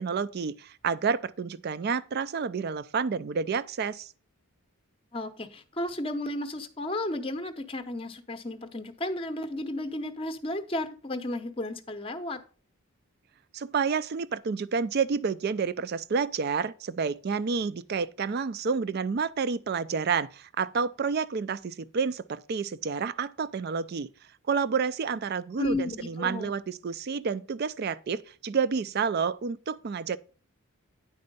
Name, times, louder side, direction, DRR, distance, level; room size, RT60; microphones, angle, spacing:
voice 1, 0.0-4.1 13.5-24.1 24.5-30.2, right 5 dB, 45° right, 0.3 m, -29 dB
voice 2, 5.1-12.4 25.6-26.6, left 1 dB, 25° left, 0.7 m, -33 dB
9.6 x 4.3 x 5.3 m
head